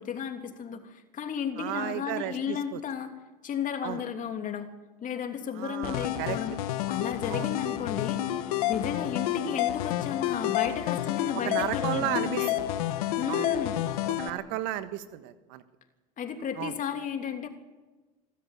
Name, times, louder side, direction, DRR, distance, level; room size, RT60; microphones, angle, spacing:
voice 1, 0.0-3.1 3.4-4.7 5.0-6.5 6.9-12.5 13.2-13.8 16.2-17.5, left 7 dB, 45° left, 5 dB, 3.0 m, -34 dB
voice 2, 1.6-2.8 3.8-4.0 5.6-6.4 7.3-7.5 11.4-12.5 13.3-13.5 14.2-15.6 16.6-16.7, right 14 dB, 70° right, 11 dB, 1.5 m, -33 dB
sound 1, 5.8-14.3, left 13 dB, 80° left, 1.4 m, -30 dB
26.0 x 13.0 x 9.2 m, 1.2 s
hypercardioid pair, 75°, 19 cm